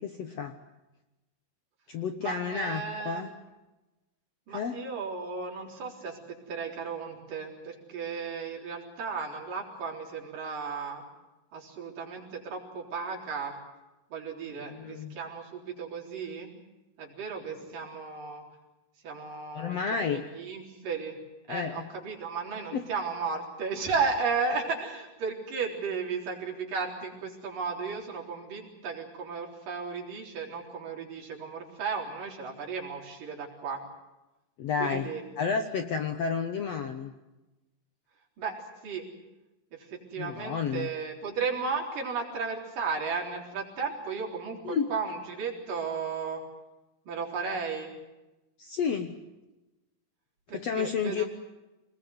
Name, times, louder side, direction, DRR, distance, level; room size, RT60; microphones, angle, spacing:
voice 1, 0.0-0.6 1.9-3.3 4.5-4.8 14.5-15.1 19.5-20.2 21.5-21.9 22.7-22.8 34.6-35.1 35.4-37.1 40.2-40.9 44.7-44.9 48.6-49.1 50.5-51.2, left 6 dB, 60° left, 6 dB, 1.7 m, -31 dB
voice 2, 2.2-3.2 4.5-11.0 11.5-13.6 14.1-16.5 17.0-18.4 19.0-21.2 21.5-33.8 34.8-35.2 38.4-38.6 38.8-39.1 39.7-46.4 47.1-47.9 50.5-51.3, right 5 dB, 65° right, 0 dB, 5.4 m, -34 dB
26.0 x 20.5 x 7.9 m, 1.0 s
omnidirectional pair, 4.2 m